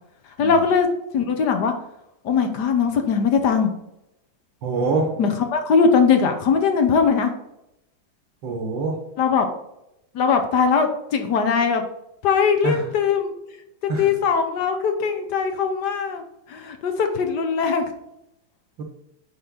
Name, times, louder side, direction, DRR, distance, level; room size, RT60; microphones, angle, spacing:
voice 1, 0.4-0.9 1.1-1.7 2.2-3.7 5.2-7.3 9.2-9.5 10.1-11.8 12.2-13.3 14.0-16.2 16.5-17.8, left 5 dB, 65° left, 6 dB, 1.4 m, -20 dB
voice 2, 4.6-5.2 8.4-9.0 12.6-12.9 13.9-14.2 18.8-18.9, right 3 dB, 80° right, 2 dB, 2.4 m, -25 dB
8.0 x 4.8 x 3.9 m, 0.85 s
omnidirectional pair, 2.1 m